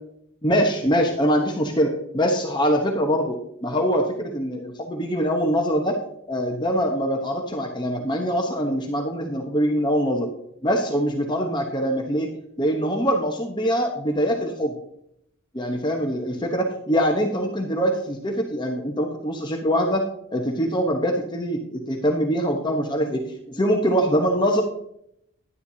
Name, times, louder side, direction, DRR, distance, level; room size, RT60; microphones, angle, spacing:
voice 1, 0.4-6.0 6.3-10.3 10.6-12.3 12.6-14.8 15.5-20.0 20.3-24.6, equal, 20° left, 2 dB, 1.0 m, -23 dB
11.0 x 10.0 x 2.8 m, 0.73 s
head